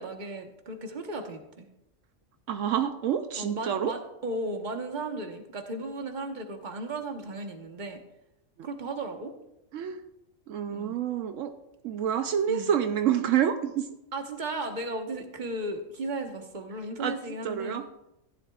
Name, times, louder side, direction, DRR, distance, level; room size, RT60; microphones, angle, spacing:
voice 1, 0.0-1.7 3.4-8.0 8.6-9.3 10.7-11.0 12.5-12.7 14.1-17.8, right 2 dB, 40° right, 4 dB, 1.3 m, -35 dB
voice 2, 2.5-4.0 8.6-8.7 9.7-10.0 10.5-11.5 11.8-13.9 17.0-17.2 17.4-18.1, right 9 dB, 80° right, 8 dB, 1.0 m, -28 dB
15.0 x 11.0 x 2.4 m, 0.86 s
omnidirectional pair, 1.3 m